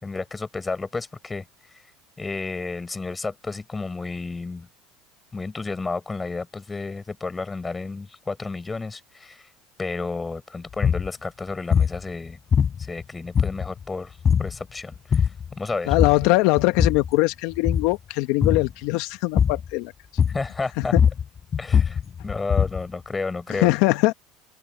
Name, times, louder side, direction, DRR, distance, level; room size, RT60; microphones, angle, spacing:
voice 1, 0.0-1.4 2.2-4.7 5.3-9.4 9.8-12.4 12.8-15.3 15.6-15.9 20.3-20.9 21.6-23.7, left 3 dB, 20° left, 5.2 m, -31 dB
sound 1, 10.7-11.1 11.7-12.0 12.5-13.0 13.3-13.8 14.2-14.6 14.9-15.5 15.9-16.3 16.6-17.1 17.5-17.9 18.4-18.7 19.4-19.7 20.2-20.5 20.8-22.9, left 7 dB, 35° left, 4.1 m, -21 dB
voice 2, 15.9-19.9 20.8-21.0 23.5-24.1, left 21 dB, 70° left, 1.0 m, -21 dB
open air
supercardioid pair, 90°, 0 cm